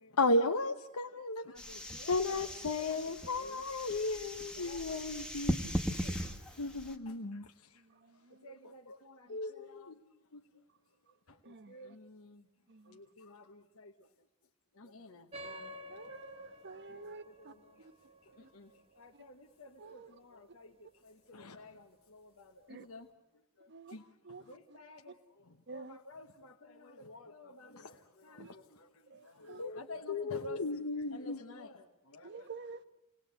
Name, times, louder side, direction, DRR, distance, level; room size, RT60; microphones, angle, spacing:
voice 1, 0.2-1.5 2.1-5.6 6.6-7.5 8.9-9.0 9.3-10.0 10.3-10.4 21.3-21.6 23.9-24.0 27.8-27.9 28.4-28.5 29.6-29.8 30.1-31.4, left 2 dB, 85° left, 4 dB, 1.0 m, -34 dB
voice 2, 1.0-3.6 4.1-6.2 7.0-7.2 8.3-9.9 11.3-12.5 12.8-14.1 14.7-15.9 16.8-17.9 18.2-23.1 23.6-24.0 24.3-30.6 31.1-32.5, left 2 dB, 65° left, 2 dB, 1.2 m, -53 dB
sound 1, 1.6-7.0, equal, 5° left, 1.4 m, -39 dB
voice 3, 8.0-8.5 9.3-9.4 11.4-11.8 12.7-13.0 15.9-17.9 18.4-18.5 19.8-20.1 22.7-22.8 23.7-24.0 24.2-24.4 24.7-24.8 25.7-26.0 28.4-28.5 29.1-29.6 32.2-32.8, right 4 dB, 50° right, 12 dB, 1.0 m, -49 dB
sound 2, 15.3-20.3, equal, 25° right, 1.4 m, -51 dB
28.5 x 19.5 x 8.1 m, 0.89 s
head